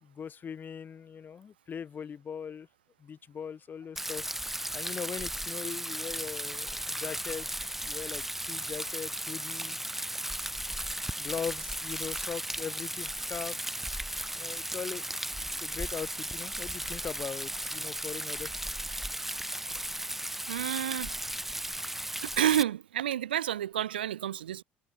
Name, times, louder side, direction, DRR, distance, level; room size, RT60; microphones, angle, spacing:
voice 1, 0.0-2.7 3.0-4.2 4.7-7.5 7.8-9.8 10.9-13.6 14.3-18.6, left 7 dB, 35° left, 1.1 m, -40 dB
Rain, 4.0-22.6, right 1 dB, 5° right, 0.8 m, -36 dB
voice 2, 20.5-21.2 22.2-24.6, right 11 dB, 85° right, 0.6 m, -29 dB
hypercardioid pair, 60°, 5 cm